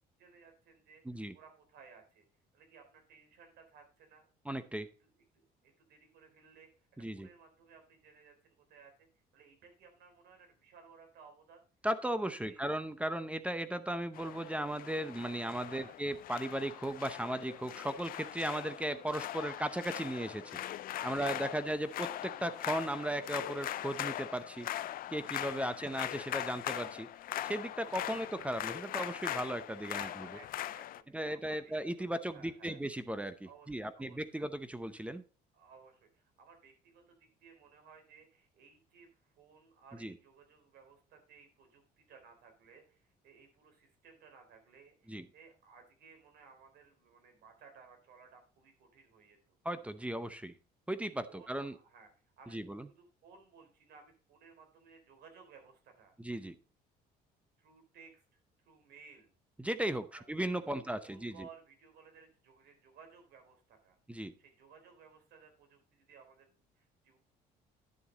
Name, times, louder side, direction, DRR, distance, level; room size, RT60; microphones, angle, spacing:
voice 1, 0.2-1.0 1.3-2.2 2.5-4.3 5.0-9.1 9.3-11.6 12.4-12.8 15.7-16.0 20.9-21.9 25.5-25.9 27.9-28.2 30.0-32.8 33.4-34.5 35.5-49.6 51.3-52.6 52.9-56.1 57.6-58.2 58.6-59.3 60.1-60.2 60.6-67.2, right 5 dB, 75° right, 5 dB, 3.6 m, -59 dB
voice 2, 1.0-1.3 4.5-4.9 7.0-7.3 11.8-20.6 21.0-24.7 25.1-27.1 27.4-30.1 31.1-35.2 40.0-40.1 45.1-45.3 49.6-50.6 50.9-51.7 52.5-52.9 56.2-56.5 59.6-61.5 64.1-64.3, right 1 dB, 5° right, 12 dB, 0.7 m, -36 dB
sound 1, 14.1-31.0, left 13 dB, 60° left, 0.5 m, -41 dB
11.0 x 7.0 x 3.9 m, 0.36 s
cardioid pair, 110°, 17 cm